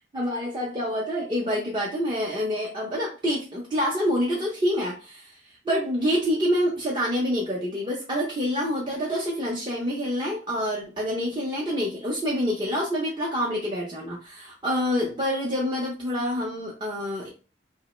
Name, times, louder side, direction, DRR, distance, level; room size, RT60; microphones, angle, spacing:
voice 1, 0.1-5.3 5.7-17.3, equal, 25° right, -4 dB, 0.5 m, -27 dB
2.8 x 2.0 x 3.0 m, 0.33 s
head